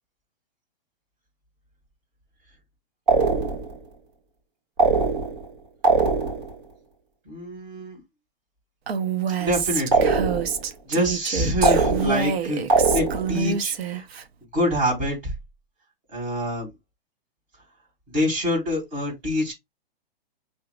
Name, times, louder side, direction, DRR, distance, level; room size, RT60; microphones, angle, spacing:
sound 1, 3.1-3.8 4.8-5.5 5.8-6.6 9.9-10.6 11.6-12.4 12.7-13.4, right 3 dB, 55° right, 1.7 m, -21 dB
voice 1, 7.2-8.0 9.4-10.1 10.8-14.1 14.5-15.3 16.1-16.7 18.1-19.5, left 1 dB, 25° right, 2.5 m, -26 dB
Female speech woman speaking, 8.9-14.2, right 6 dB, 80° right, 0.8 m, -27 dB
5.8 x 2.7 x 2.3 m
hypercardioid pair, 180°, 30 cm